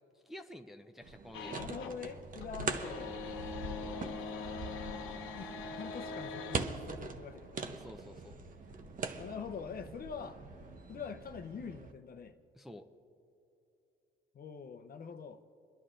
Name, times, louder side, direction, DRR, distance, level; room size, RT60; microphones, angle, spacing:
voice 1, 0.3-1.6 7.7-8.4 12.5-12.9, left 1 dB, ahead, 5 dB, 0.5 m, -50 dB
sound 1, 1.0-11.9, right 5 dB, 45° right, 0.7 m, -43 dB
sound 2, 1.3-2.0 2.3-6.6, left 4 dB, 90° left, 0.9 m, -42 dB
voice 2, 1.5-3.1 3.5-4.1 5.1-7.8 8.8-10.4 10.9-12.3 14.3-15.4, left 6 dB, 50° left, 8 dB, 0.7 m, -45 dB
sound 3, 1.6-10.7, equal, 75° right, 1.0 m, -50 dB
28.0 x 11.0 x 2.5 m, 2.8 s
cardioid pair, 90°, 20 cm